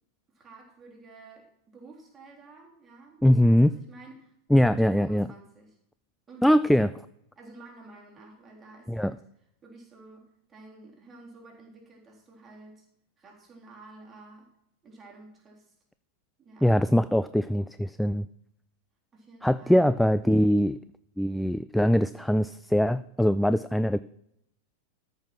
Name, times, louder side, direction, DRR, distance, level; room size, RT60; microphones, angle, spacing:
voice 1, 0.3-4.3 4.6-5.8 6.3-6.8 7.4-9.2 9.6-12.8 13.2-14.5 14.8-15.7 16.4-16.8 19.1-20.0, right 2 dB, 20° right, -1 dB, 3.4 m, -50 dB
voice 2, 3.2-3.7 4.5-5.3 6.4-6.9 8.9-9.1 16.6-18.3 19.4-20.8 21.2-24.0, equal, ahead, 14 dB, 0.3 m, -22 dB
13.5 x 5.6 x 6.1 m, 0.77 s
figure-of-eight pair, 90°, 0 cm